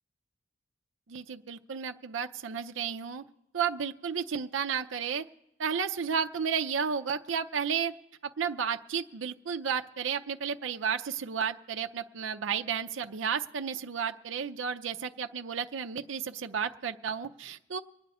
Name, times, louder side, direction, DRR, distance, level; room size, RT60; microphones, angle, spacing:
voice 1, 1.1-3.2 3.5-5.3 5.6-7.9 8.4-17.8, right 7 dB, 85° right, 6 dB, 0.6 m, -32 dB
25.0 x 9.6 x 4.2 m, 0.87 s
head